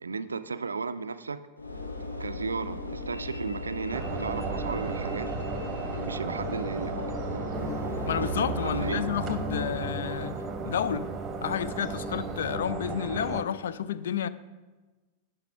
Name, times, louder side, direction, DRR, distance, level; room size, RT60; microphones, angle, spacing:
voice 1, 0.0-1.4 2.2-5.3 6.0-6.9 8.6-9.0, right 4 dB, 75° right, 0.3 m, -34 dB
Train / Engine / Alarm, 1.6-9.8, left 2 dB, 80° left, 0.8 m, -37 dB
sound 1, 3.9-13.4, right 4 dB, 25° right, 0.9 m, -35 dB
sound 2, 7.5-9.8, right 1 dB, 5° left, 1.0 m, -36 dB
voice 2, 8.1-10.4 10.7-11.1 11.4-14.3, left 9 dB, 60° left, 0.3 m, -30 dB
10.5 x 4.8 x 4.5 m
figure-of-eight pair, 90°, 0 cm